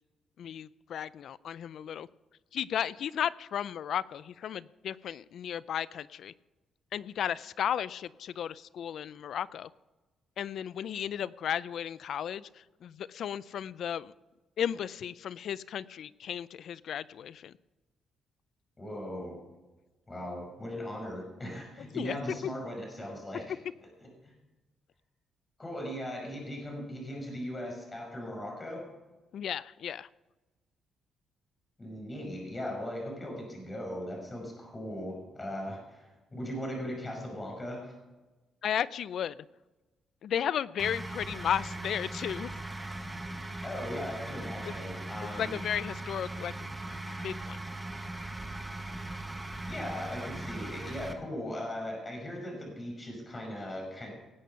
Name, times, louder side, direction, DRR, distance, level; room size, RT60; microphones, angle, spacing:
voice 1, 0.4-2.1 2.5-6.3 6.9-9.7 10.4-14.1 14.6-17.5 21.9-22.2 29.3-30.1 38.6-39.3 40.2-42.5 44.7-44.8 45.4-46.7 47.2-47.6, left 9 dB, 65° left, 19 dB, 0.4 m, -34 dB
voice 2, 18.8-19.4 20.1-23.6 24.0-24.1 25.6-28.9 31.8-36.1 36.3-38.0 43.6-45.5 49.6-54.1, left 1 dB, 25° left, 1 dB, 5.5 m, -38 dB
sound 1, 40.8-51.1, right 2 dB, 10° right, 1.6 m, -39 dB
18.5 x 8.5 x 5.7 m, 1.2 s
cardioid pair, 90°, 0 cm